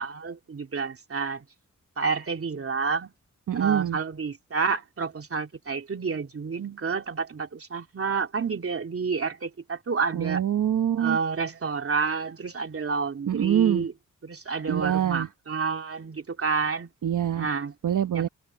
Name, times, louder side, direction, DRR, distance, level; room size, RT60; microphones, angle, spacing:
voice 1, 0.0-1.4 2.0-3.1 3.5-10.4 11.0-13.9 14.2-16.9 17.4-17.7 18.1-18.3, right 5 dB, 45° right, 2.9 m, -29 dB
voice 2, 3.5-4.0 10.1-11.2 13.3-13.9 14.7-15.3 17.0-17.5 17.8-18.3, right 10 dB, 75° right, 1.2 m, -24 dB
wide cardioid pair, 95°, 31 cm